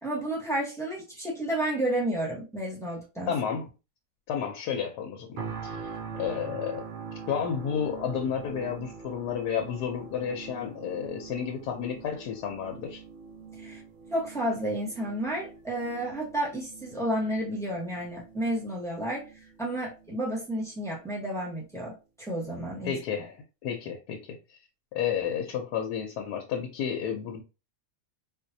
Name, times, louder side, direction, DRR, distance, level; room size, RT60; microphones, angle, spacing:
voice 1, 0.0-3.3 13.6-13.8 14.1-19.2 19.6-21.9 22.2-23.0, right 1 dB, ahead, 0.8 m, -31 dB
voice 2, 3.3-3.7 4.3-6.9 7.3-13.0 22.8-24.6 24.9-27.4, left 8 dB, 85° left, 1.2 m, -32 dB
sound 1, 5.4-20.4 20.9-21.0, right 5 dB, 80° right, 0.4 m, -43 dB
4.0 x 2.5 x 2.7 m
omnidirectional pair, 1.7 m